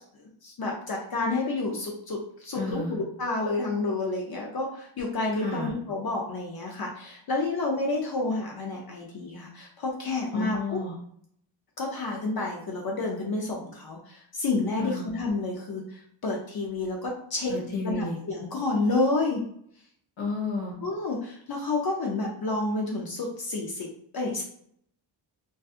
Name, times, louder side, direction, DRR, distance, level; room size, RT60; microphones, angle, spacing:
voice 1, 0.1-10.8 11.8-17.5 17.8-19.4 20.8-23.9 24.1-24.4, left 3 dB, 50° left, -1 dB, 0.5 m, -30 dB
voice 2, 2.5-3.0 5.3-5.7 10.3-10.9 14.8-15.1 17.5-18.2 20.2-20.8, left 3 dB, 70° left, -3 dB, 1.1 m, -32 dB
2.6 x 2.3 x 2.3 m, 0.66 s
wide cardioid pair, 180°, 48 cm